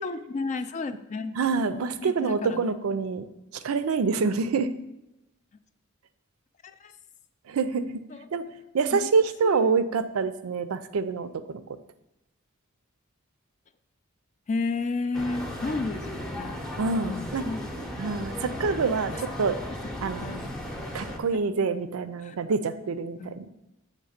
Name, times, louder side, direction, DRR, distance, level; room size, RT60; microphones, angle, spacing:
voice 1, 0.0-1.3 2.0-2.8 6.6-6.9 8.1-8.3 8.9-9.1 9.4-9.7 14.5-16.6 17.0-17.7 18.4-18.5 19.1-19.2 19.7-19.8 20.2-20.5 22.2-22.4 23.2-23.4, left 3 dB, 35° left, 10 dB, 0.3 m, -32 dB
voice 2, 1.4-3.3 3.5-4.7 7.5-7.9 8.3-8.5 8.7-11.6 16.8-17.5 18.0-19.6 20.0-20.4 20.9-23.5, right 4 dB, 80° right, 12 dB, 0.4 m, -26 dB
sound 1, 15.1-21.2, left 1 dB, ahead, 0.7 m, -36 dB
7.5 x 3.1 x 5.7 m, 0.93 s
head